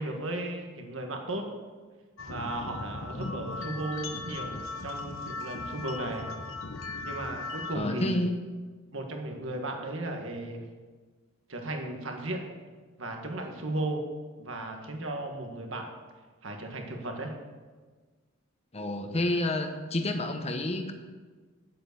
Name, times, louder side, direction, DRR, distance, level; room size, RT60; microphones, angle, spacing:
voice 1, 0.0-1.4 2.3-6.3 7.0-8.2 8.9-10.6 11.5-12.4 13.0-14.0 14.4-15.9 16.4-17.3, right 2 dB, 70° right, 3 dB, 1.6 m, -35 dB
sound 1, 2.2-7.7, left 3 dB, 75° left, 0.9 m, -38 dB
voice 2, 3.1-3.7 7.7-8.4 18.7-20.9, left 1 dB, 30° left, 5 dB, 0.9 m, -30 dB
9.3 x 7.8 x 6.8 m, 1.4 s
head